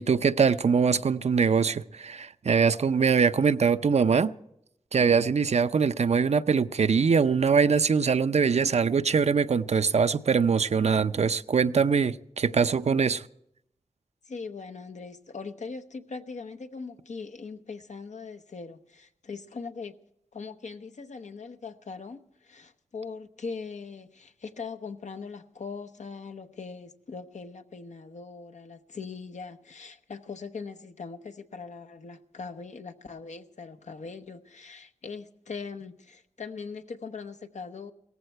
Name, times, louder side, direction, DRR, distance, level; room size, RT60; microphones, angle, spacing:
voice 1, 0.0-4.3 4.9-13.3, right 5 dB, 60° right, 0.5 m, -23 dB
voice 2, 14.2-20.0 20.3-37.9, left 4 dB, 75° left, 0.9 m, -40 dB
17.0 x 14.5 x 4.5 m
wide cardioid pair, 60°, 12 cm